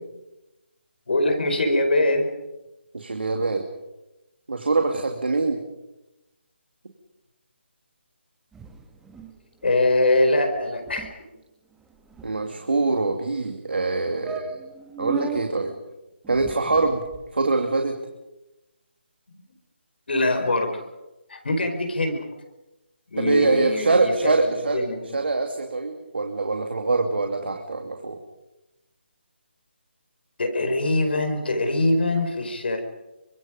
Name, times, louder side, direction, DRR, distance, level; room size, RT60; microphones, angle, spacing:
voice 1, 1.1-2.3 9.6-11.1 20.1-20.8 21.3-22.2 23.1-25.2 30.4-32.8, left 2 dB, 60° left, 6 dB, 5.0 m, -23 dB
voice 2, 2.9-3.6 4.5-5.6 12.2-14.6 15.0-15.8 16.3-17.0 17.3-18.0 23.2-24.8 25.1-28.2, right 3 dB, 65° right, 4 dB, 2.6 m, -24 dB
sound 1, 8.5-9.4 9.6-9.8 10.1-10.3 10.6-10.7 10.9-11.1 11.7-12.8 13.5-13.6 13.9-14.0 14.2-15.4 16.2-17.3, right 7 dB, 5° right, 1.7 m, -36 dB
28.0 x 25.0 x 5.3 m, 0.99 s
figure-of-eight pair, 150°, 6 cm